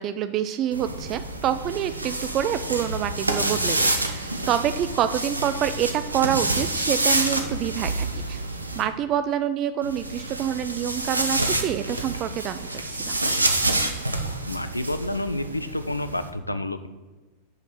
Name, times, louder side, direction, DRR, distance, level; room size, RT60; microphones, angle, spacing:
voice 1, 0.0-8.4 8.8-13.2, right 10 dB, 35° right, 11 dB, 0.4 m, -27 dB
sound 1, 0.7-8.8 9.8-16.3, right 2 dB, 85° right, 0.8 m, -28 dB
voice 2, 14.5-16.9, left 1 dB, 85° left, 11 dB, 0.5 m, -29 dB
6.4 x 5.2 x 6.5 m, 1.3 s
figure-of-eight pair, 90°, 0 cm